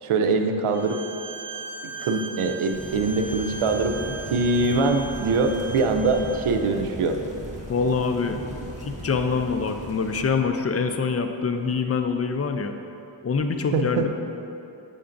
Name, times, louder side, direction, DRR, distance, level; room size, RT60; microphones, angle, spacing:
voice 1, 0.0-1.0 1.8-4.0 4.3-7.2 13.7-14.1, right 3 dB, 85° right, 5 dB, 0.6 m, -23 dB
Bowed string instrument, 0.7-6.5, right 4 dB, 35° right, 0.6 m, -38 dB
sound 1, 2.7-10.3, right 1 dB, 15° right, 1.2 m, -37 dB
voice 2, 7.7-8.4 8.8-12.8 13.2-14.1, left 5 dB, 30° left, 6 dB, 0.4 m, -25 dB
6.9 x 6.4 x 2.5 m, 2.9 s
wide cardioid pair, 65°, 49 cm